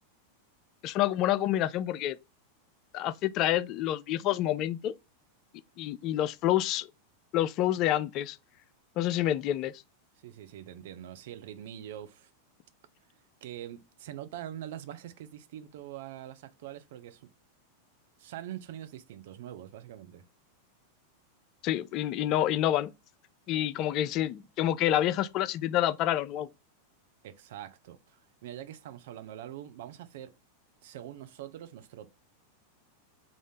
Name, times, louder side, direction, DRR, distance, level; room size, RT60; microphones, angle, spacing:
voice 1, 0.8-2.2 2.9-4.9 5.8-6.9 7.3-8.4 9.0-9.7 21.6-22.9 23.5-26.5, left 12 dB, 40° left, 0.3 m, -28 dB
voice 2, 10.2-12.3 13.4-17.3 18.2-20.3 27.2-30.4 30.8-32.2, right 11 dB, 55° right, 0.5 m, -44 dB
3.9 x 2.4 x 3.4 m
figure-of-eight pair, 90°, 0 cm